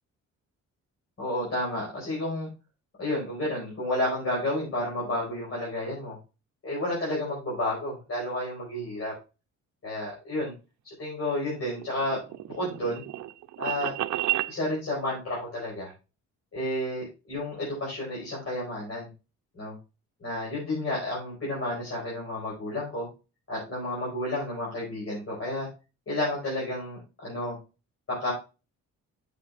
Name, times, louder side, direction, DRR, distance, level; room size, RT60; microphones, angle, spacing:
voice 1, 1.2-2.5 3.0-6.2 6.6-9.1 9.8-10.5 10.8-12.2 12.5-13.0 13.6-13.9 14.5-15.9 16.5-19.1 19.6-19.7 20.2-23.1 23.5-25.7 26.1-27.6 28.1-28.3, left 1 dB, 50° left, -5 dB, 5.3 m, -31 dB
sound 1, 11.5-14.5, right 15 dB, 70° right, 0.6 m, -32 dB
8.7 x 7.8 x 2.5 m, 0.30 s
cardioid pair, 90°, 30 cm